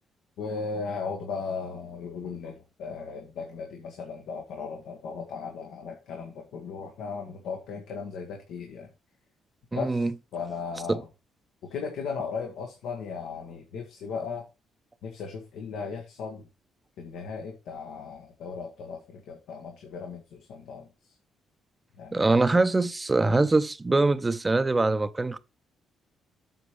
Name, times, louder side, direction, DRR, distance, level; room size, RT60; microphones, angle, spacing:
voice 1, 0.4-8.9 9.7-10.0 10.3-11.1 11.7-14.4 15.0-16.4 17.0-20.9 22.0-22.2, left 5 dB, 85° left, 1.6 m, -36 dB
voice 2, 9.7-10.1 10.9-11.0 22.1-25.4, right 2 dB, 20° right, 0.6 m, -23 dB
8.1 x 4.5 x 5.1 m
cardioid pair, 90°, 0 cm